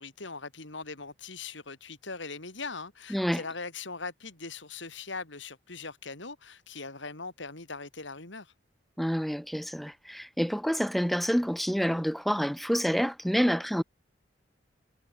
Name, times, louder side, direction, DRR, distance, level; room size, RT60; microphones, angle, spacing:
voice 1, 0.0-8.5, left 4 dB, 80° left, 3.5 m, -40 dB
voice 2, 3.1-3.4 9.0-13.8, equal, ahead, 0.9 m, -28 dB
head